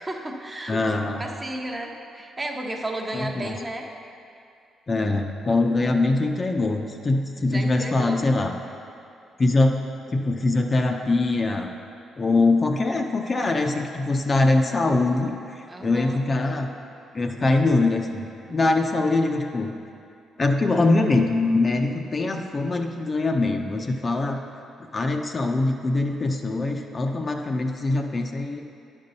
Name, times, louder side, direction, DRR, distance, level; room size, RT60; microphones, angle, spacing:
voice 1, 0.0-0.8 1.2-3.9 7.5-8.2 15.7-16.2, right 1 dB, 25° right, 2 dB, 0.8 m, -33 dB
voice 2, 0.7-1.2 3.1-3.5 4.9-8.5 9.4-9.8 10.1-11.7 12.2-16.7 17.1-19.7 20.4-24.4 24.9-28.6, left 2 dB, 35° left, 3 dB, 0.6 m, -23 dB
10.5 x 5.3 x 4.1 m, 2.5 s
cardioid pair, 90°, 0 cm